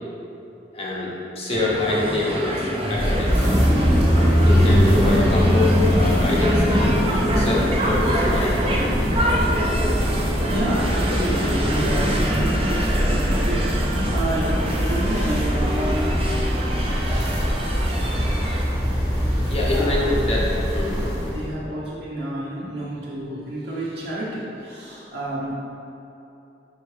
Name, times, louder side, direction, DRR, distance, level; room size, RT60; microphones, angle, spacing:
voice 1, 0.7-3.5 4.4-7.0 7.3-8.5 19.5-20.4 20.7-21.1, left 2 dB, 35° left, -4 dB, 1.2 m, -25 dB
sound 1, 1.5-18.6, equal, 30° right, 0.7 m, -27 dB
sound 2, 3.0-21.5, equal, 15° right, 1.5 m, -22 dB
sound 3, 6.8-13.6 13.8-13.9, equal, 85° left, 0.9 m, -33 dB
voice 2, 10.5-16.2 17.0-17.4 19.3-20.1 21.3-25.5, right 1 dB, 70° right, -7 dB, 1.3 m, -30 dB
5.1 x 5.0 x 4.6 m, 2.9 s
head